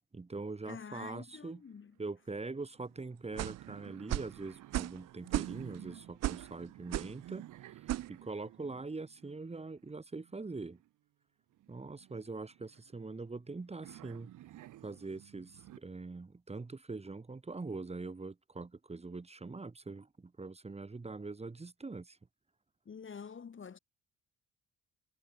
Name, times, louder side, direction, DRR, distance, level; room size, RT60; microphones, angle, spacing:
voice 1, 0.1-1.6 2.0-7.8 8.1-10.8 11.7-14.3 14.8-22.2, right 3 dB, 20° right, 2.0 m, -43 dB
voice 2, 0.7-2.0 22.9-23.8, left 6 dB, 40° left, 3.3 m, -47 dB
sound 1, 1.2-2.0 2.2-2.3 2.7-10.9 11.5-13.5 13.8-15.8, right 14 dB, 85° right, 4.0 m, -53 dB
sound 2, 3.4-3.6 4.1-4.3 4.7-5.0 5.3-5.8 6.2-6.5 6.9-7.2 7.9-8.1, right 14 dB, 60° right, 0.5 m, -34 dB
cardioid pair, 90°, 30 cm